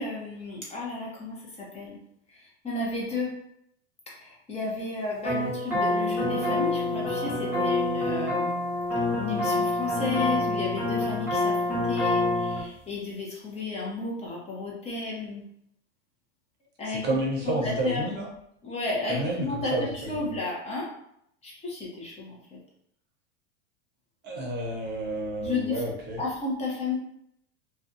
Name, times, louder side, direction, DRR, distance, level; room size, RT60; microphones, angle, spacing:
voice 1, 0.0-1.4 1.7-2.0 2.6-3.4 4.2-8.5 9.2-15.4 16.8-17.1 17.5-18.0 18.6-19.7 20.1-20.9 21.4-22.4 25.4-25.8 26.2-26.9, left 3 dB, 15° left, -3 dB, 0.7 m, -32 dB
sound 1, 5.2-12.6, left 2 dB, 5° right, 1.1 m, -27 dB
voice 2, 16.8-18.3 19.1-20.3 24.2-26.2, right 1 dB, 30° right, -2 dB, 0.8 m, -30 dB
2.5 x 2.2 x 2.6 m, 0.73 s
supercardioid pair, 125°, 37 cm